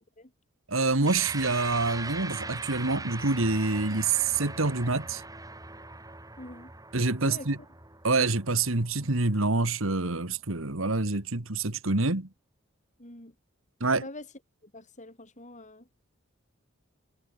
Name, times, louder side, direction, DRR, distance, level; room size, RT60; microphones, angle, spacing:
voice 1, 0.7-5.2 6.9-7.6 8.0-12.3 13.8-14.0, right 3 dB, 70° right, 2.0 m, -26 dB
sound 1, 1.1-9.7, right 3 dB, 15° right, 3.4 m, -40 dB
voice 2, 6.4-6.7 7.2-7.5 13.0-13.3 14.0-14.3 14.6-15.9, left 1 dB, 35° left, 7.3 m, -45 dB
head